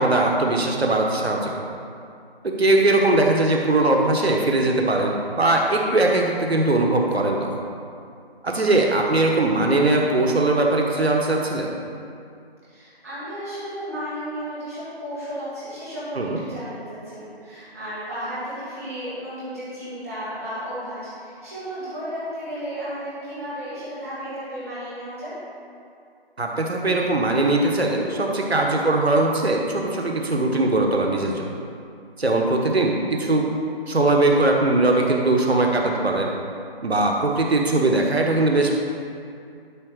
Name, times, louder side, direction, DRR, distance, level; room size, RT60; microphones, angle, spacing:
voice 1, 0.0-1.7 2.4-7.6 8.4-11.7 16.1-16.4 26.4-31.5 32.2-33.5 33.9-36.3 36.8-38.8, right 2 dB, 85° right, 0 dB, 1.3 m, -20 dB
voice 2, 12.7-25.3 35.5-35.9, equal, 15° right, -13 dB, 2.1 m, -33 dB
12.0 x 4.9 x 4.8 m, 2.4 s
figure-of-eight pair, 175°, 31 cm